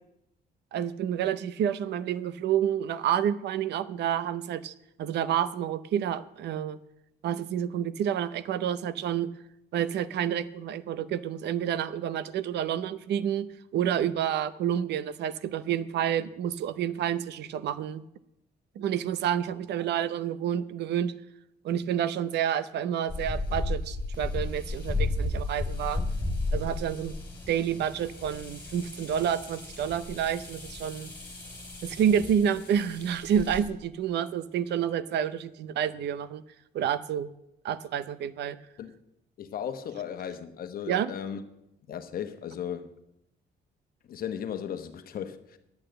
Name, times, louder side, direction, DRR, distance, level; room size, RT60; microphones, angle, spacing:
voice 1, 0.7-4.7 5.0-6.8 7.2-9.3 9.7-18.0 18.8-21.1 21.6-26.0 26.5-27.1 27.5-31.1 31.8-36.4 36.7-37.3 37.6-38.6 40.8-41.1, right 9 dB, 80° right, 0.6 m, -29 dB
sound 1, 23.1-33.6, left 2 dB, 10° left, 3.3 m, -34 dB
voice 2, 39.4-41.4 41.9-42.9 44.1-45.6, left 8 dB, 60° left, 1.0 m, -36 dB
10.5 x 8.9 x 7.7 m
cardioid pair, 155°, 17 cm